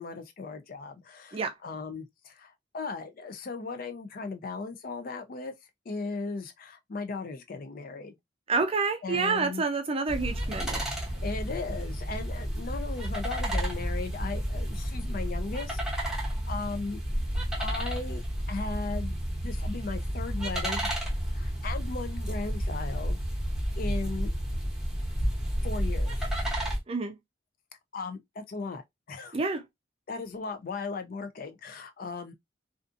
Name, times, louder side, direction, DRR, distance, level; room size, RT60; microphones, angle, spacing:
voice 1, 0.0-5.5 5.9-8.2 9.0-9.6 11.2-17.0 17.6-19.2 19.4-20.9 21.3-23.2 23.8-24.3 25.6-26.3 27.9-29.4 30.1-32.3, left 4 dB, 45° left, 0.4 m, -37 dB
voice 2, 8.5-10.8 26.9-27.1 29.3-29.6, right 4 dB, 30° right, 0.4 m, -28 dB
sound 1, 10.1-26.8, equal, 5° right, 0.7 m, -31 dB
2.5 x 2.4 x 2.4 m
head